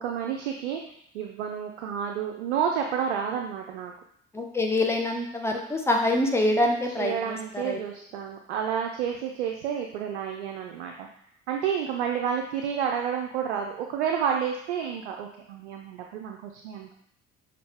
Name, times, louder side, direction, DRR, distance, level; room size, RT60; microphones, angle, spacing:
voice 1, 0.0-3.9 7.0-11.1 11.5-16.9, right 8 dB, 75° right, 2 dB, 0.5 m, -30 dB
voice 2, 4.3-7.8, left 1 dB, 5° left, 1 dB, 0.9 m, -25 dB
6.1 x 2.6 x 3.3 m, 0.68 s
figure-of-eight pair, 45°, 34 cm